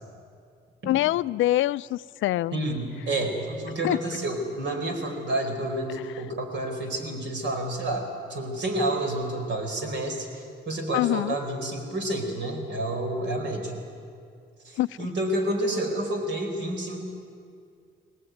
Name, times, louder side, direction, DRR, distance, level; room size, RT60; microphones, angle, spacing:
voice 1, 0.8-2.6 3.8-4.0 10.9-11.3 14.8-15.0, left 15 dB, 80° left, 17 dB, 0.5 m, -24 dB
voice 2, 2.5-13.7 14.6-17.0, right 1 dB, 65° right, 3 dB, 4.6 m, -29 dB
21.0 x 19.0 x 9.3 m, 2.3 s
cardioid pair, 90°, 20 cm